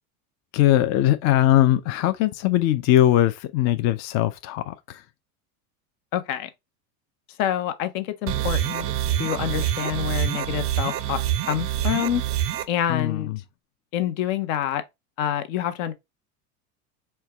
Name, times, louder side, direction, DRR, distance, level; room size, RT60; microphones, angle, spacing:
voice 1, 0.5-5.0 12.9-13.4, left 13 dB, 40° left, 0.4 m, -20 dB
voice 2, 6.1-6.5 7.4-8.9 9.2-11.2 11.5-12.2 12.7-13.3 13.9-14.8 15.2-15.9, left 10 dB, 70° left, 0.9 m, -27 dB
sound 1, 8.3-12.6, right 12 dB, 35° right, 0.4 m, -26 dB
4.5 x 2.2 x 3.3 m
supercardioid pair, 110°, 43 cm